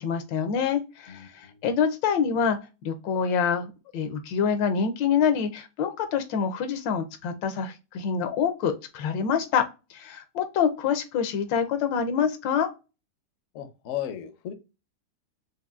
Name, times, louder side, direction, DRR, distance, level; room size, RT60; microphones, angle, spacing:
voice 1, 0.0-2.6 2.8-9.7 9.9-12.7, left 7 dB, 85° left, 1.3 m, -26 dB
voice 2, 1.1-1.6 13.5-14.5, left 11 dB, 65° left, 0.8 m, -35 dB
5.0 x 2.5 x 2.3 m
omnidirectional pair, 2.0 m